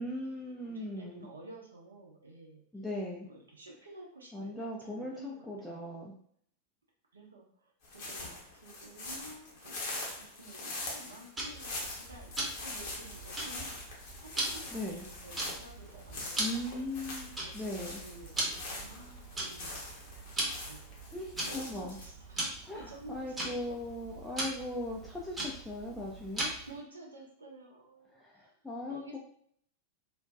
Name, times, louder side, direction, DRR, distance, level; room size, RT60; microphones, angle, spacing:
voice 1, 0.0-1.3 2.7-3.3 4.3-6.1 14.7-15.1 16.4-18.0 21.1-22.0 22.6-26.5 28.1-29.2, left 1 dB, 5° left, -3 dB, 0.4 m, -39 dB
voice 2, 0.6-2.6 3.2-5.8 7.1-9.8 10.2-14.0 14.3-14.7 15.0-16.7 17.4-19.8 20.7-20.9 21.4-23.6 26.7-28.5 28.9-29.2, right 2 dB, 75° right, -1 dB, 0.7 m, -51 dB
sound 1, 7.8-22.1, left 2 dB, 50° left, 0.8 m, -43 dB
Tick-tock, 11.4-26.8, right 1 dB, 15° right, 0.8 m, -40 dB
2.5 x 2.2 x 2.3 m, 0.64 s
figure-of-eight pair, 90°, 0 cm